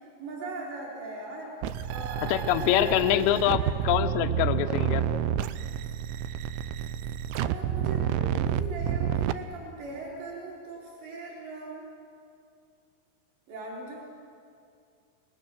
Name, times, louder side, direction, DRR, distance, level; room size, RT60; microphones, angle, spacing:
voice 1, 0.0-1.6 1.9-3.7 7.3-11.9 13.5-14.0, right 2 dB, 65° right, -8 dB, 5.8 m, -40 dB
sound 1, 1.6-9.3, right 9 dB, 85° right, 3.1 m, -29 dB
voice 2, 2.3-5.1, left 12 dB, 80° left, 8 dB, 2.8 m, -25 dB
29.0 x 21.0 x 6.6 m, 2.4 s
omnidirectional pair, 5.3 m